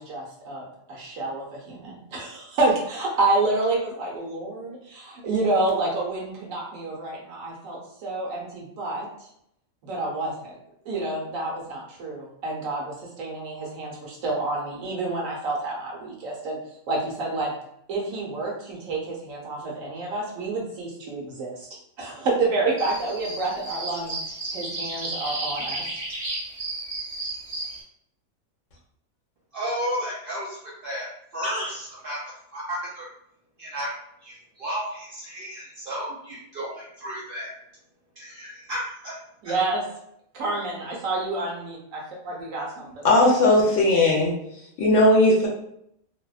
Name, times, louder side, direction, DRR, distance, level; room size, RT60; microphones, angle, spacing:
voice 1, 0.0-9.3 9.8-10.5 10.8-16.6 16.9-17.5 17.9-25.9 39.4-39.8 40.3-43.1, right 2 dB, 70° right, -3 dB, 1.1 m, -29 dB
sound 1, 22.8-27.8, right 2 dB, 30° right, 0.8 m, -33 dB
voice 2, 29.5-31.1 31.3-32.2 32.5-33.1 33.6-33.9 34.2-37.5 38.2-39.2 39.4-39.5, equal, 90° right, -5 dB, 0.4 m, -33 dB
voice 3, 43.0-44.3 44.8-45.5, left 1 dB, 65° left, -2 dB, 0.9 m, -17 dB
2.7 x 2.1 x 2.3 m, 0.74 s
omnidirectional pair, 1.5 m